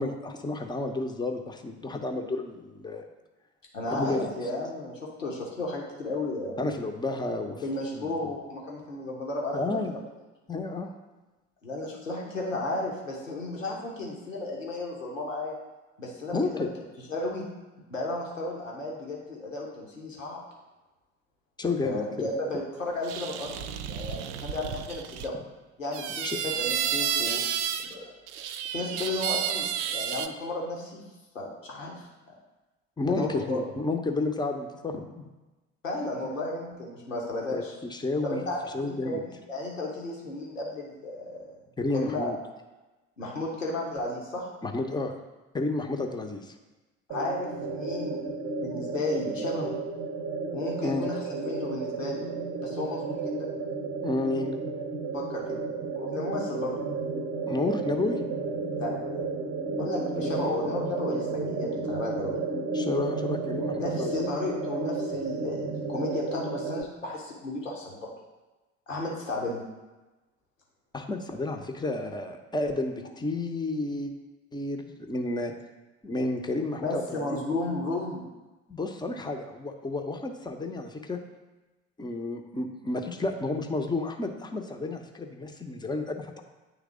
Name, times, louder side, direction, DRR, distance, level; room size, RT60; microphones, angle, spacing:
voice 1, 0.0-3.0 3.9-4.3 6.6-7.6 7.9-8.1 9.5-10.0 10.5-10.9 16.3-16.7 21.6-22.0 26.2-26.4 33.0-35.3 37.5-38.4 38.7-39.2 41.8-42.4 44.6-45.2 45.5-46.5 50.8-51.1 54.0-54.5 57.5-58.2 60.2-60.5 62.7-64.4 70.9-74.1 74.5-75.5 76.0-77.4 78.7-81.2 82.0-86.4, left 2 dB, 10° left, 4 dB, 0.6 m, -31 dB
voice 2, 3.7-6.7 7.6-10.1 11.6-15.6 16.0-16.7 17.0-17.4 17.9-20.4 21.8-23.5 23.9-25.3 25.8-27.4 27.8-28.1 28.7-31.0 31.3-32.1 33.1-33.6 35.8-37.7 38.2-39.2 39.5-41.5 41.9-42.3 43.2-44.5 47.1-48.2 48.6-49.7 50.5-52.2 52.6-53.5 55.1-55.6 55.9-56.8 58.8-58.9 59.8-62.4 63.8-68.1 68.9-69.6 76.8-78.2, left 2 dB, 85° left, -2 dB, 1.0 m, -33 dB
sound 1, 23.0-25.3 25.9-27.9 28.3-30.3, right 9 dB, 65° right, 0.5 m, -31 dB
sound 2, 47.1-66.8, right 3 dB, 30° right, 0.8 m, -32 dB
9.4 x 3.3 x 3.7 m, 1.1 s
figure-of-eight pair, 55°, 38 cm